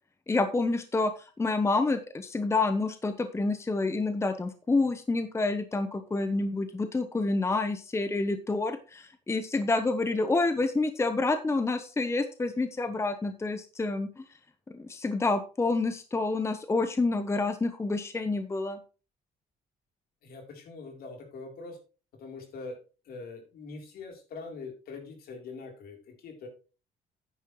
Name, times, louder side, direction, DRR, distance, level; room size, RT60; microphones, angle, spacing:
voice 1, 0.3-14.2 14.7-18.8, left 3 dB, 15° left, 10 dB, 0.8 m, -28 dB
voice 2, 20.2-21.8 22.2-22.8 23.1-26.5, left 3 dB, 65° left, 3 dB, 3.5 m, -43 dB
9.9 x 9.7 x 3.1 m, 0.34 s
cardioid pair, 110°, 17 cm